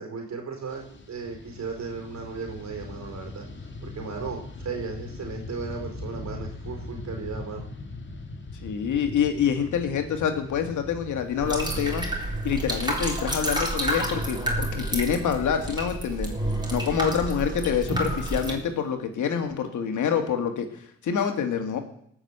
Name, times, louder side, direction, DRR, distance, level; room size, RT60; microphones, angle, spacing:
voice 1, 0.0-3.5 3.8-7.7 16.8-17.3, right 4 dB, 65° right, 3 dB, 4.3 m, -36 dB
Fixed-wing aircraft airplane, 0.7-18.1, left 2 dB, 40° left, 2.1 m, -42 dB
voice 2, 8.6-12.1 12.4-16.3 16.7-21.8, left 7 dB, 75° left, 6 dB, 2.1 m, -26 dB
sound 1, 11.4-18.5, right 1 dB, 15° right, 3.8 m, -29 dB
19.0 x 6.5 x 8.0 m, 0.69 s
supercardioid pair, 60°, 30 cm